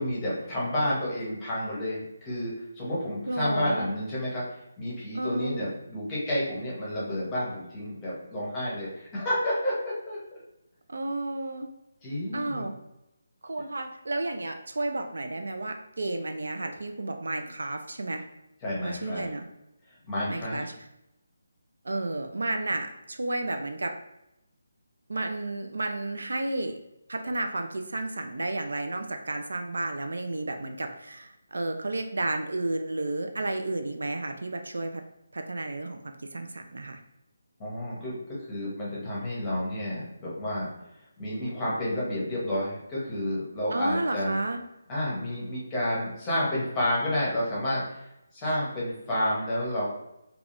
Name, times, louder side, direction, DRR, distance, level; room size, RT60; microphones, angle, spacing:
voice 1, 0.0-4.4 4.8-10.2 12.0-12.7 18.6-19.3 20.0-20.6 37.6-38.2 38.5-40.7 41.2-44.3 44.9-48.1 48.3-49.8, left 1 dB, 10° left, -7 dB, 0.7 m, -30 dB
voice 2, 3.3-3.9 5.1-5.7 10.9-11.7 12.3-12.7 13.4-18.3 18.8-19.5 20.3-20.7 21.8-23.9 25.1-26.8 27.1-35.0 35.3-37.0 43.7-44.6, right 2 dB, 90° right, 5 dB, 0.4 m, -32 dB
3.3 x 2.3 x 2.5 m, 0.87 s
hypercardioid pair, 175°, 0 cm